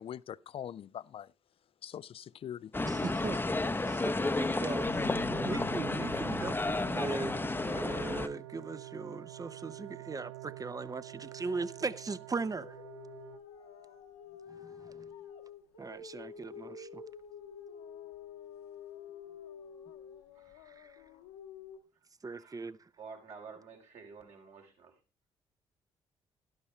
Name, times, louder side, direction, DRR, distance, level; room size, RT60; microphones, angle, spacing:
voice 1, 0.0-1.3 1.8-2.7, left 9 dB, 45° left, 0.4 m, -43 dB
sound 1, 2.7-8.3, left 2 dB, 15° left, 0.8 m, -32 dB
voice 2, 2.8-3.4 3.8-12.8 14.5-15.1 15.8-17.0 20.7-21.0 22.2-22.8, right 4 dB, 30° right, 0.8 m, -39 dB
sound 2, 4.9-13.4, right 15 dB, 90° right, 0.4 m, -48 dB
sound 3, 12.5-21.8, left 7 dB, 85° left, 1.4 m, -49 dB
voice 3, 20.3-20.8 22.4-22.7 23.0-24.9, right 5 dB, 60° right, 3.5 m, -50 dB
12.0 x 11.5 x 3.2 m
hypercardioid pair, 45°, 13 cm